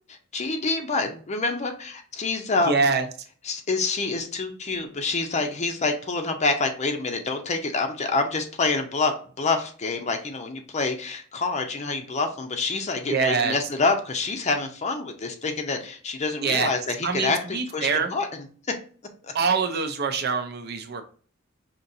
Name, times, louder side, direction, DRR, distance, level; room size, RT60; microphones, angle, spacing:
voice 1, 0.3-2.7 3.4-18.3 19.2-19.3, left 3 dB, 35° left, 5 dB, 0.6 m, -27 dB
voice 2, 2.6-3.0 13.0-13.6 16.4-16.7 17.0-18.1 19.3-21.0, right 5 dB, 55° right, 7 dB, 0.6 m, -24 dB
5.3 x 2.8 x 2.7 m, 0.42 s
head